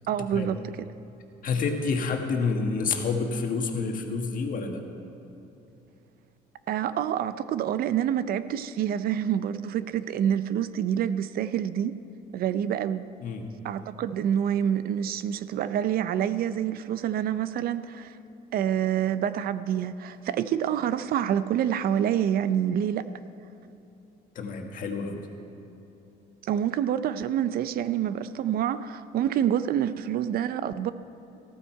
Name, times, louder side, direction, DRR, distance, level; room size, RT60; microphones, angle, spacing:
voice 1, 0.1-0.6 6.7-11.9 12.3-13.0 13.6-18.1 18.5-23.1 26.5-30.9, right 10 dB, 60° right, 13 dB, 0.5 m, -27 dB
voice 2, 1.4-4.8 13.2-13.5 24.3-25.3, left 4 dB, 55° left, 3 dB, 1.6 m, -28 dB
14.5 x 13.5 x 4.5 m, 2.9 s
cardioid pair, 110°, 17 cm